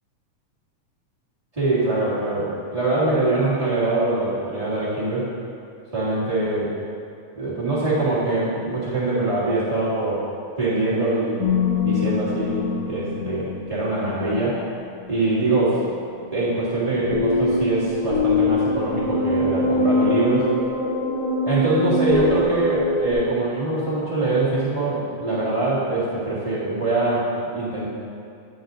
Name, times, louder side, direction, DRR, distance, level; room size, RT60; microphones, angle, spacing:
voice 1, 1.5-5.3 5.9-6.7 7.3-10.2 10.6-11.5 11.8-14.7 15.1-15.8 16.3-20.5 21.4-27.9, right 2 dB, 20° right, -11 dB, 0.9 m, -23 dB
sound 1, 11.4-14.6 17.1-23.1, left 2 dB, 80° left, 2.2 m, -23 dB
8.7 x 7.8 x 2.6 m, 2.5 s
omnidirectional pair, 3.3 m